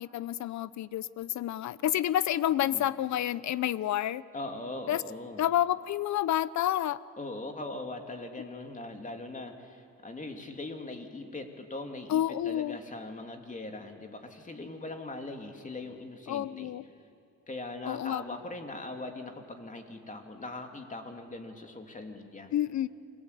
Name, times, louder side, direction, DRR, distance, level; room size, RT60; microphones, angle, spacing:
voice 1, 0.0-4.2 4.9-5.0 5.4-7.0 12.1-12.8 16.3-16.8 17.9-18.2 22.5-22.9, left 12 dB, 65° left, 18 dB, 0.8 m, -29 dB
voice 2, 4.3-5.4 7.2-16.7 17.5-22.5, left 2 dB, 25° left, 4 dB, 3.0 m, -41 dB
28.0 x 21.0 x 8.4 m, 2.4 s
cardioid pair, 90°, 30 cm